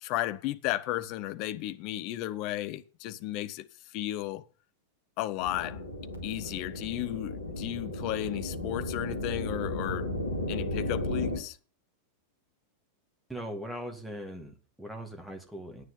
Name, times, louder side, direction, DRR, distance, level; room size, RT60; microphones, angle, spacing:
voice 1, 0.0-3.7 3.9-4.4 5.2-5.8 6.2-10.2 10.5-11.6, left 15 dB, 40° left, 0.7 m, -34 dB
sound 1, 5.4-11.4, left 1 dB, 80° left, 2.1 m, -34 dB
voice 2, 13.3-15.8, equal, ahead, 2.0 m, -40 dB
9.6 x 9.0 x 5.4 m
figure-of-eight pair, 90°, 0 cm